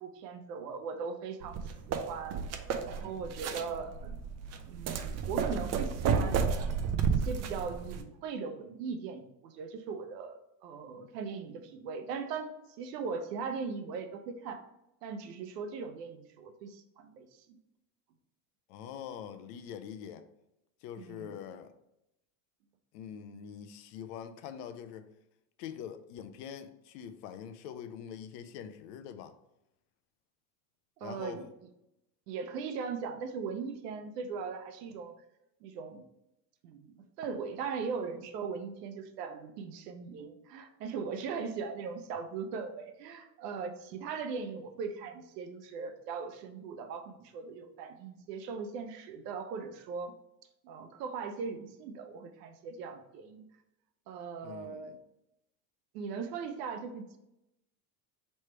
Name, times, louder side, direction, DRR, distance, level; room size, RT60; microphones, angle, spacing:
voice 1, 0.0-2.4 2.9-4.2 4.7-6.5 7.1-12.5 12.8-14.6 15.0-17.6 21.0-21.3 31.0-31.5 32.3-35.1 35.6-36.1 36.6-50.1 50.6-53.5 54.1-55.0 55.9-57.2, right 5 dB, 90° right, 0.7 m, -39 dB
sound 1, 1.4-8.0, right 6 dB, 35° right, 0.4 m, -32 dB
voice 2, 18.7-20.2 20.8-21.7 22.9-25.1 25.6-29.3 31.0-31.4 54.4-55.0, left 8 dB, 75° left, 0.6 m, -44 dB
3.2 x 3.1 x 4.4 m
supercardioid pair, 105°, 47 cm